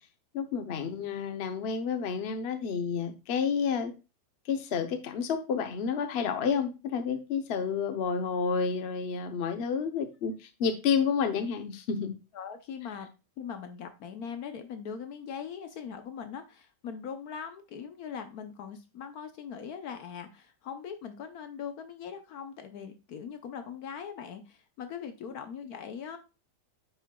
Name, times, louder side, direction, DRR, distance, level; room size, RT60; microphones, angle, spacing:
voice 1, 0.3-3.9 4.5-12.2, left 6 dB, 45° left, 0.9 m, -30 dB
voice 2, 12.3-13.1 13.4-26.2, left 7 dB, 65° left, 1.2 m, -41 dB
9.1 x 5.8 x 2.3 m
omnidirectional pair, 1.8 m